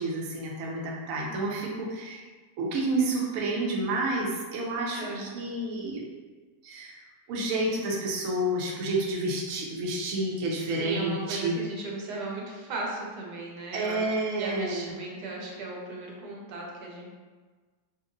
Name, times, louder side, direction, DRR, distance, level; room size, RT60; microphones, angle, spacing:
voice 1, 0.0-2.2 2.6-6.0 6.6-7.0 7.3-11.5 13.7-14.9, right 2 dB, 70° right, -2 dB, 0.8 m, -29 dB
voice 2, 5.0-5.3 10.6-14.0 14.4-17.1, right 2 dB, 85° right, -2 dB, 1.2 m, -36 dB
2.9 x 2.5 x 2.5 m, 1.4 s
omnidirectional pair, 1.7 m